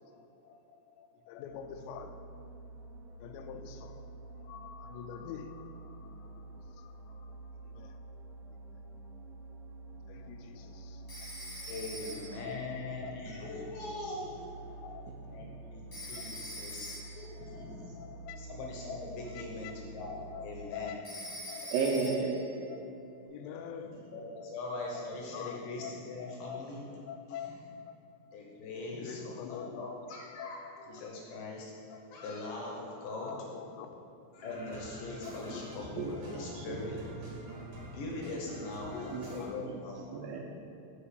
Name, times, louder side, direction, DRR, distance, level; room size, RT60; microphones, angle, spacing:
voice 1, 0.0-2.3 3.2-8.0 8.5-8.6 10.1-11.3 12.1-13.2 14.7-15.1 16.1-16.3 17.4-18.4 19.4-19.7 20.3-21.0 21.5-21.7 22.7-22.9 23.3-24.4 24.9-25.1 25.3-25.9 26.3-26.7 27.1-28.0 28.8-30.0 30.4-30.9 31.9-32.3 33.0-34.1 35.2-36.6 37.4-37.7 38.9-39.8 40.1-40.4, left 8 dB, 90° left, 7 dB, 2.8 m, -47 dB
sound 1, 1.5-20.6, right 2 dB, 65° right, 2.6 m, -48 dB
Telephone, 11.1-12.5 15.9-17.3 21.0-22.5, equal, 40° left, 1.2 m, -44 dB
voice 2, 11.7-14.8 15.3-17.9 18.4-21.0 23.3-23.6 24.1-26.9 28.3-29.2 29.5-33.4 34.3-37.0 37.8-40.4, left 2 dB, 75° left, -2 dB, 2.1 m, -41 dB
voice 3, 15.3-15.6 21.7-22.4 35.4-35.6 35.9-36.8 37.3-37.7 39.1-39.8 40.1-40.4, right 4 dB, 85° right, -1 dB, 2.0 m, -35 dB
sound 2, 34.4-39.4, right 1 dB, 50° right, 2.2 m, -46 dB
7.1 x 4.9 x 6.9 m, 2.7 s
omnidirectional pair, 4.9 m